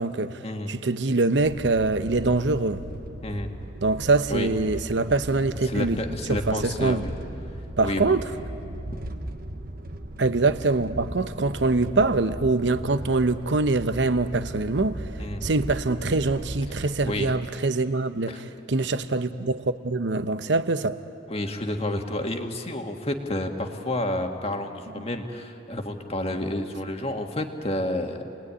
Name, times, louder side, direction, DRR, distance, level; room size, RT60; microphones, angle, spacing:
voice 1, 0.0-0.4 0.7-2.8 3.8-6.0 6.3-7.0 7.8-8.2 10.2-15.0 15.4-21.0, right 3 dB, 70° right, 0.9 m, -24 dB
sound 1, 1.4-17.4, right 1 dB, 50° right, 1.2 m, -37 dB
voice 2, 5.6-7.1 7.8-8.2 8.9-9.0 15.2-15.4 16.7-17.3 18.3-18.4 21.3-28.2, left 1 dB, 35° left, 1.9 m, -30 dB
28.0 x 20.5 x 9.8 m
head